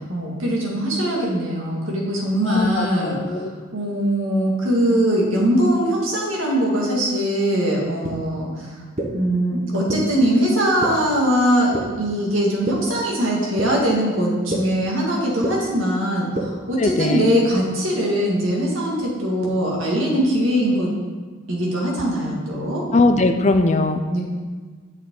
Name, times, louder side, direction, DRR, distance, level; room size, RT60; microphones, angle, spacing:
voice 1, 0.1-3.4 3.7-8.7 9.1-20.9 21.5-22.8 24.1-24.2, equal, 80° right, -3 dB, 2.1 m, -21 dB
voice 2, 2.5-3.5 16.8-17.3 22.9-24.0, left 2 dB, 35° left, 7 dB, 0.4 m, -20 dB
sound 1, 8.0-8.1 9.0-9.1 9.9-10.0 10.8-10.9 11.7-11.8 12.7-12.8 13.6-13.7 14.5-14.6 15.4-15.5 16.4-16.5, right 1 dB, 35° right, 0.9 m, -24 dB
8.3 x 6.3 x 3.8 m, 1.5 s
head